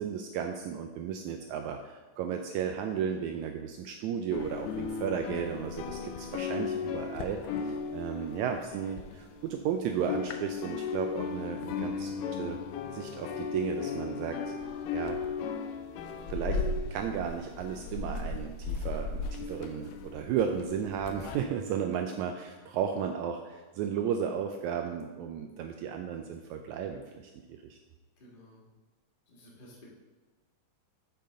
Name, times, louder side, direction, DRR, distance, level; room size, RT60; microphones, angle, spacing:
voice 1, 0.0-12.6 12.9-14.5 14.9-15.2 16.3-16.6 16.9-27.8, right 8 dB, 90° right, 5 dB, 1.6 m, -34 dB
sound 1, 4.3-9.7 9.9-21.4, left 5 dB, 90° left, 2.3 m, -36 dB
voice 2, 5.8-6.1 28.2-28.6 29.3-29.8, left 1 dB, 60° left, -4 dB, 0.5 m, -54 dB
7.8 x 6.8 x 3.8 m, 1.3 s
omnidirectional pair, 3.8 m